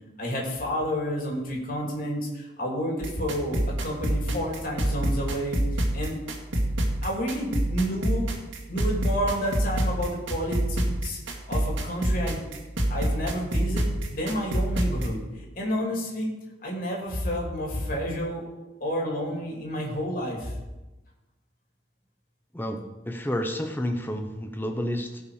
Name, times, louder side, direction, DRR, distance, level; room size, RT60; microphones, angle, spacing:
voice 1, 0.2-6.1 7.0-8.3 8.7-12.5 12.9-16.3 16.6-18.4 18.8-20.6, equal, 45° left, -2 dB, 2.9 m, -30 dB
sound 1, 3.0-15.1, right 1 dB, 90° right, 2.1 m, -27 dB
voice 2, 22.5-25.2, equal, 10° left, 5 dB, 0.8 m, -30 dB
17.0 x 5.7 x 5.0 m, 1.1 s
head